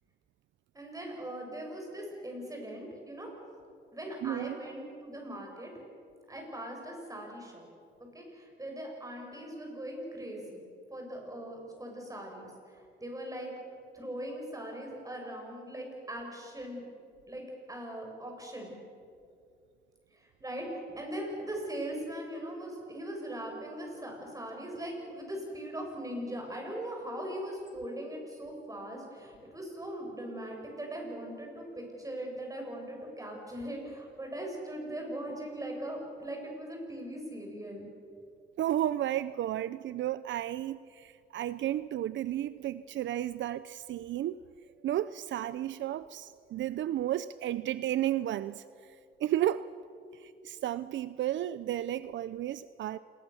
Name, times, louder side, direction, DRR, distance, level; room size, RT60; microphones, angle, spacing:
voice 1, 0.7-3.3 3.9-5.7 6.3-7.7 8.0-10.6 10.9-13.5 13.9-16.8 17.3-18.8 20.1-37.9, right 1 dB, 15° right, 1 dB, 7.5 m, -40 dB
voice 2, 4.2-4.6 38.6-44.4 44.8-49.7 50.1-53.0, right 12 dB, 70° right, 15 dB, 0.6 m, -33 dB
27.0 x 21.5 x 7.2 m, 2.4 s
cardioid pair, 90°, 20 cm